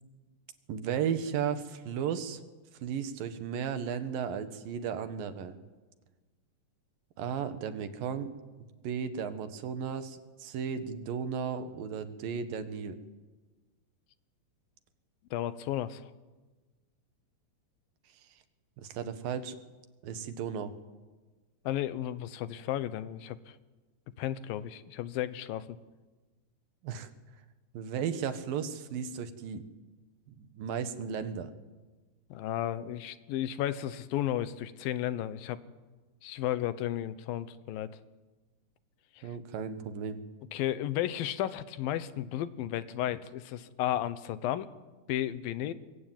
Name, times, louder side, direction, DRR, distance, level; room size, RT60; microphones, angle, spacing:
voice 1, 0.7-2.4 2.8-5.6 7.2-8.3 8.8-13.0 18.8-19.6 20.0-20.7 26.8-27.1 27.7-29.7 30.4-31.5 39.2-40.2, right 7 dB, 80° right, 10 dB, 3.3 m, -35 dB
voice 2, 15.3-16.1 21.7-23.6 24.2-25.8 32.3-35.6 36.2-37.9 40.5-44.7 45.1-45.7, left 12 dB, 90° left, 14 dB, 2.8 m, -33 dB
22.5 x 22.5 x 9.2 m, 1.3 s
omnidirectional pair, 4.0 m